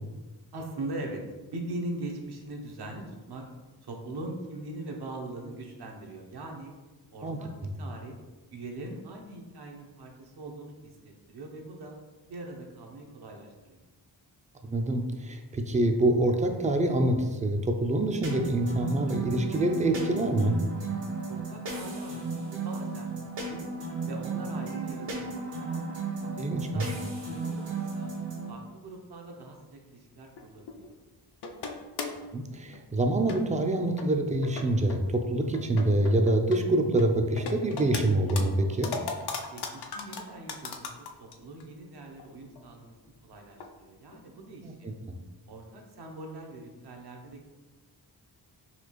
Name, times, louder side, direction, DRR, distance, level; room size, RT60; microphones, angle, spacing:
voice 1, 0.5-3.4 3.8-6.7 7.1-7.5 7.8-8.1 8.5-12.0 12.3-13.8 21.3-22.2 22.5-23.1 23.4-23.6 24.0-25.8 26.2-28.1 28.5-30.9 39.5-42.9 43.2-44.9 45.5-47.5, right 2 dB, 60° right, 2 dB, 0.8 m, -41 dB
voice 2, 14.6-20.6 26.4-26.9 32.3-38.9 44.6-45.2, right 1 dB, 20° right, 5 dB, 0.4 m, -26 dB
sound 1, 18.2-28.5, right 3 dB, 80° right, 1.1 m, -35 dB
sound 2, 30.4-30.9 31.4-32.3 32.7-32.8 33.3-33.7 34.0-34.1 34.4-35.0 35.5-36.6 36.9-38.0 38.3-41.3 41.6-41.7 42.2-42.3 42.5-42.6 43.6-43.7 44.1-44.2, left 4 dB, 65° left, 0.6 m, -37 dB
4.2 x 2.4 x 3.0 m, 1.2 s
cardioid pair, 65°, 44 cm